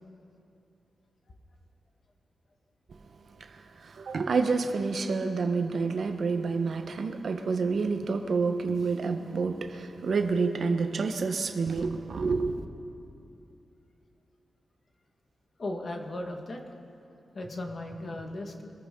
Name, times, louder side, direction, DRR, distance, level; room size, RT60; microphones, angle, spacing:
voice 1, 3.5-12.7, right 4 dB, 60° right, 6 dB, 1.1 m, -28 dB
voice 2, 15.6-16.6 17.3-18.7, left 1 dB, 45° left, 3 dB, 1.6 m, -36 dB
25.0 x 14.0 x 3.8 m, 2.7 s
cardioid pair, 85°, 0 cm